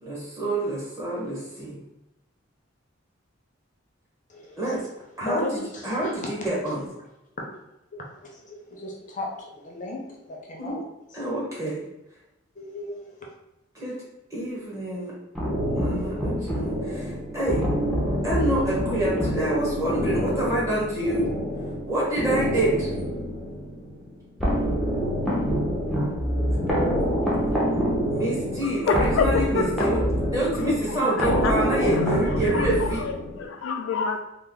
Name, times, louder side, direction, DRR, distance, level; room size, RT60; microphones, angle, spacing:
voice 1, 0.0-1.8 4.6-4.8 5.2-6.9 10.6-10.8 11.1-11.8 13.7-13.9 14.3-15.1 15.7-17.6 18.2-21.3 21.9-22.9 28.1-30.0 30.3-33.0, right 1 dB, 15° right, -6 dB, 1.2 m, -27 dB
voice 2, 4.3-4.6 5.2-6.5 7.9-10.8 11.1-11.3 12.6-13.3, left 2 dB, 40° left, -1 dB, 0.6 m, -36 dB
sound 1, 15.3-33.5, equal, ahead, 0.7 m, -26 dB
voice 3, 28.6-29.9 30.6-34.2, left 5 dB, 80° left, 7 dB, 0.3 m, -29 dB
3.2 x 2.0 x 3.7 m, 0.93 s
head